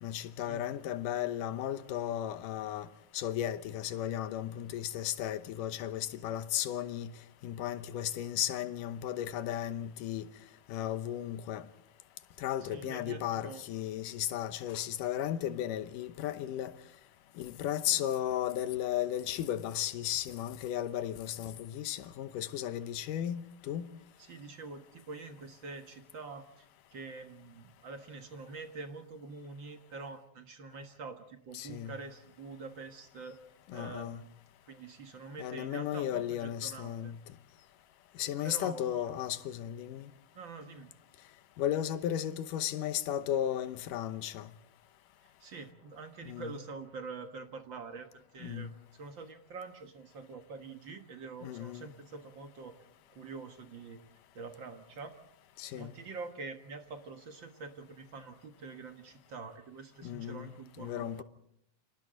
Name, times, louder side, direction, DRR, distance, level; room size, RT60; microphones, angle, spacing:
voice 1, 0.0-2.9 3.1-7.1 7.4-10.3 10.7-11.7 12.4-16.7 17.4-23.9 31.5-32.0 33.7-34.2 35.4-37.2 38.2-40.1 41.6-44.5 46.3-46.6 48.4-48.7 51.4-51.9 55.6-55.9 60.0-60.5 60.8-61.2, left 11 dB, 80° left, 2.6 m, -35 dB
voice 2, 12.6-13.7 24.2-26.7 26.9-33.4 33.7-34.3 34.7-37.1 38.4-39.1 40.4-40.9 45.4-52.8 53.1-54.0 54.3-55.2 55.7-61.2, right 4 dB, 45° right, 1.7 m, -46 dB
30.0 x 26.5 x 3.9 m
omnidirectional pair, 3.8 m